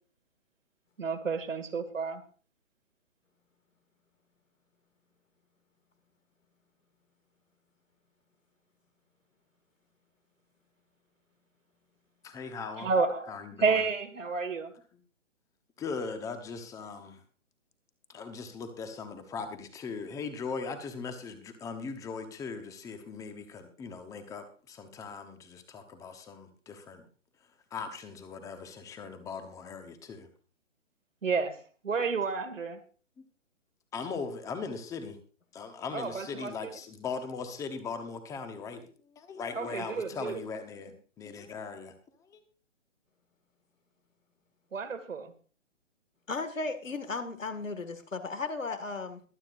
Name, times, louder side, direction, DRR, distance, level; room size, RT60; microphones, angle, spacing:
voice 1, 1.0-2.2 12.8-14.7 31.2-32.8 35.9-36.7 39.5-40.4 44.7-45.3, right 4 dB, 80° right, 7 dB, 2.2 m, -31 dB
voice 2, 12.2-12.9 13.3-13.8 15.8-17.2 18.1-27.0 27.7-30.3 33.2-33.3 33.9-35.2 35.5-38.9 39.1-41.9 42.3-42.4, left 5 dB, 10° left, 8 dB, 1.0 m, -39 dB
voice 3, 46.3-49.2, left 3 dB, 85° left, 9 dB, 2.2 m, -35 dB
22.5 x 9.0 x 2.6 m, 0.40 s
figure-of-eight pair, 140°, 38 cm